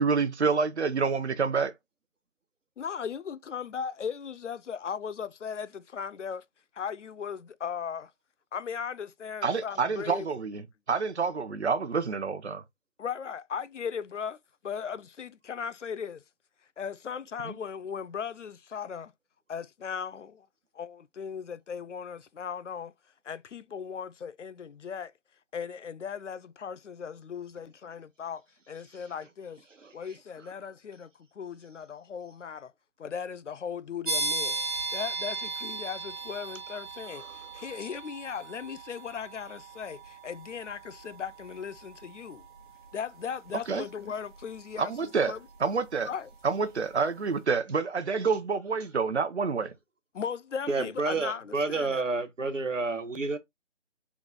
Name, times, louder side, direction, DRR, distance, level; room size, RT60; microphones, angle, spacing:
voice 1, 0.0-1.7 9.4-10.6 10.9-12.6 17.4-17.5 43.7-43.8 44.8-45.3 45.6-46.1 46.4-49.7, right 5 dB, 60° right, 0.8 m, -28 dB
voice 2, 2.8-6.4 6.7-8.1 8.5-10.3 13.0-16.2 16.8-19.1 19.5-20.5 20.7-22.9 23.2-25.1 25.5-29.6 29.9-32.7 33.0-34.6 34.9-42.5 42.9-45.7 46.0-46.3 50.1-52.0, left 7 dB, 75° left, 0.5 m, -37 dB
sound 1, 34.1-46.6, right 3 dB, 40° right, 1.1 m, -38 dB
voice 3, 50.7-53.4, right 3 dB, 80° right, 1.1 m, -30 dB
4.0 x 2.3 x 3.7 m
figure-of-eight pair, 155°, 37 cm